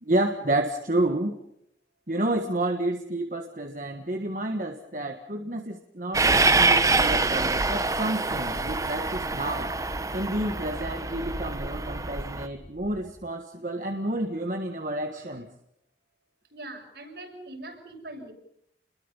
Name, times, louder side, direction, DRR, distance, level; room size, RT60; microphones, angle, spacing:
voice 1, 0.0-1.4 2.1-9.7 10.1-15.5, right 1 dB, 45° right, 4 dB, 1.6 m, -30 dB
Train, 6.1-12.5, right 3 dB, 20° right, 0.9 m, -25 dB
sound 1, 7.7-13.1, equal, 55° left, 4.8 m, -46 dB
voice 2, 15.1-15.4 16.5-18.3, right 2 dB, 70° right, 2 dB, 6.8 m, -42 dB
30.0 x 22.0 x 5.6 m, 0.76 s
head